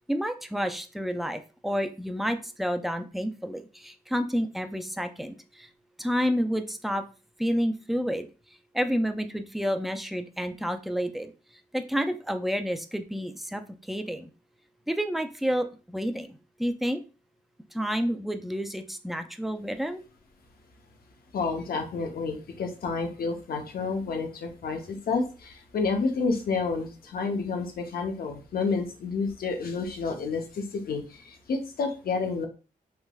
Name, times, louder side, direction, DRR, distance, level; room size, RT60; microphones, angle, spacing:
voice 1, 0.1-5.7 6.0-7.0 7.4-8.3 8.7-11.3 11.7-13.6 13.9-14.3 14.9-17.0 17.7-20.0, equal, ahead, 7 dB, 0.4 m, -29 dB
voice 2, 21.3-32.5, left 4 dB, 85° left, 4 dB, 0.7 m, -30 dB
3.3 x 2.9 x 2.2 m, 0.33 s
cardioid pair, 75°, 15 cm